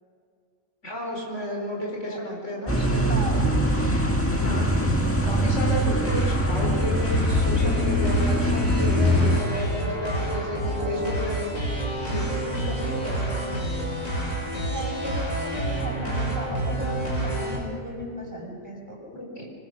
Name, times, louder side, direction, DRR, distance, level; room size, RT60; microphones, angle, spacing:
voice 1, 0.8-3.1 4.4-4.7 5.2-11.5 12.0-13.7 19.1-19.5, left 1 dB, 60° left, -1 dB, 5.0 m, -32 dB
sound 1, 2.7-9.4, equal, 10° left, 1.8 m, -23 dB
voice 2, 3.1-3.4 14.7-19.0, equal, 15° right, -2 dB, 6.7 m, -36 dB
sound 2, 5.6-17.6, right 1 dB, 85° left, 6.9 m, -29 dB
26.0 x 24.0 x 6.5 m, 2.2 s
omnidirectional pair, 1.4 m